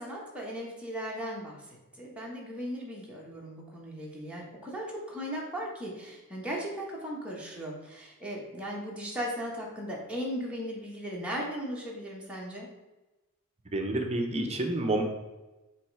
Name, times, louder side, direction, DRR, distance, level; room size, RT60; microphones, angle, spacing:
voice 1, 0.0-1.6 2.0-12.7, equal, 5° right, -4 dB, 1.5 m, -37 dB
voice 2, 13.7-15.0, right 2 dB, 30° right, 3 dB, 0.8 m, -29 dB
7.5 x 3.2 x 4.8 m, 1.1 s
head